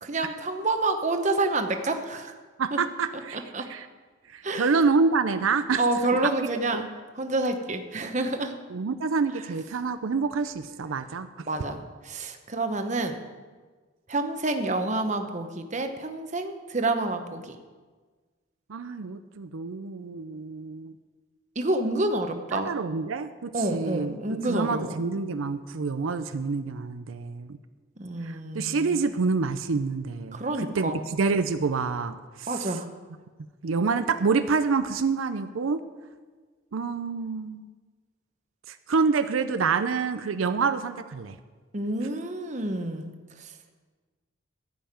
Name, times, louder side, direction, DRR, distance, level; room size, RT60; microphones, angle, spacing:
voice 1, 0.0-2.4 2.7-2.8 3.3-3.7 4.4-4.8 5.8-6.9 7.1-8.6 11.4-13.2 14.1-17.6 21.6-22.7 23.5-25.0 28.0-29.0 30.3-31.1 32.5-32.9 41.7-43.1 43.4-43.5, right 2 dB, 35° right, 6 dB, 0.9 m, -28 dB
voice 2, 2.6-3.4 3.7-3.9 4.3-5.8 6.7-6.9 8.7-11.5 18.7-20.9 22.5-24.2 24.5-27.6 28.2-32.7 33.6-35.8 36.7-37.7 38.7-41.4, right 4 dB, 85° right, 10 dB, 0.5 m, -27 dB
14.5 x 5.7 x 8.8 m, 1.4 s
head